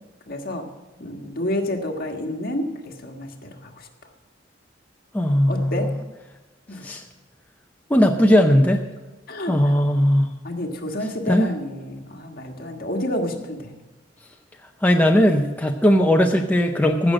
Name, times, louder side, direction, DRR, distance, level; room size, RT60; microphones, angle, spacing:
voice 1, 0.3-0.7 1.0-3.9 5.5-5.9 6.7-6.9 9.3-9.8 10.4-13.7, left 1 dB, 50° left, 2 dB, 1.5 m, -29 dB
voice 2, 5.1-5.9 6.8-7.0 7.9-8.8 9.5-10.3 11.3-11.5 14.8-17.1, equal, 10° left, 2 dB, 0.6 m, -18 dB
15.0 x 6.4 x 7.5 m, 1.1 s
head